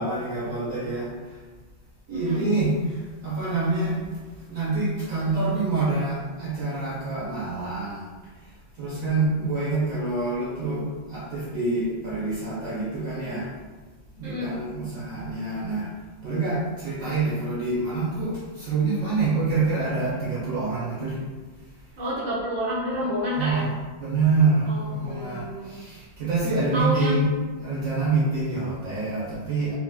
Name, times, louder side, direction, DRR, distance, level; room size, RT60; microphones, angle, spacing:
voice 1, 0.0-1.4 2.1-8.1 8.8-13.5 14.2-15.9 16.2-21.2 23.3-29.7, right 3 dB, 65° right, -8 dB, 0.8 m, -26 dB
voice 2, 2.1-2.4 14.2-14.6 22.0-23.7 24.7-25.8 26.7-27.2, equal, 80° right, -9 dB, 0.3 m, -29 dB
4.0 x 2.0 x 2.3 m, 1.3 s
omnidirectional pair, 2.3 m